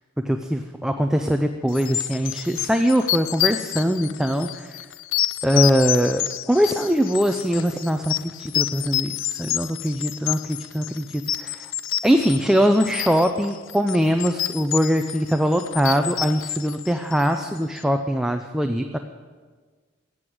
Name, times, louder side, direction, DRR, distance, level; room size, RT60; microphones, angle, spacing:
voice 1, 0.2-4.8 5.4-11.0 12.0-19.0, equal, 5° right, 5 dB, 0.5 m, -22 dB
sound 1, 1.7-17.6, left 13 dB, 65° left, 0.4 m, -29 dB
14.5 x 8.1 x 9.3 m, 1.5 s
head